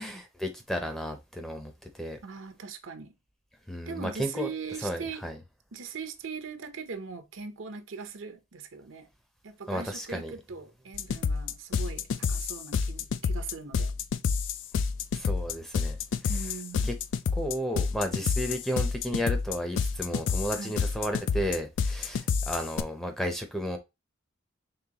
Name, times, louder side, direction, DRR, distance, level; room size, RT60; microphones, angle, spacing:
voice 1, 0.0-2.2 3.7-4.5 4.8-5.4 9.7-10.3 15.1-16.0 16.2-16.3 16.8-17.0 17.3-23.8, equal, ahead, 0.6 m, -33 dB
voice 2, 2.2-3.1 3.9-5.2 5.7-9.1 9.4-13.9 16.3-16.9 20.5-20.8, right 5 dB, 75° right, 0.7 m, -40 dB
sound 1, 10.9-22.8, left 5 dB, 65° left, 0.3 m, -29 dB
3.9 x 3.4 x 2.8 m
head